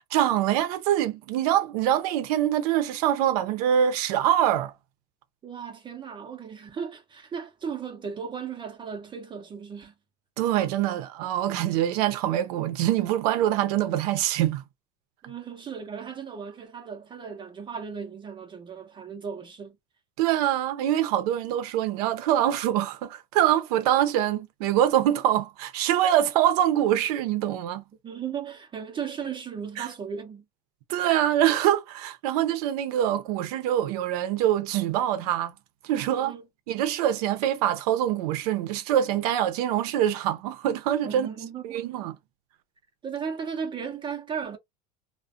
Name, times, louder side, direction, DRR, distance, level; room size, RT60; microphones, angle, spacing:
voice 1, 0.1-4.7 10.4-14.6 20.2-27.8 29.8-29.9 30.9-35.5 35.8-36.3 36.7-41.3 41.6-42.2, right 11 dB, 85° right, 0.5 m, -24 dB
voice 2, 5.4-9.9 15.2-19.8 28.0-30.4 36.1-36.4 41.0-41.9 43.0-44.6, right 6 dB, 25° right, 0.5 m, -36 dB
2.4 x 2.1 x 2.4 m
supercardioid pair, 125°, 19 cm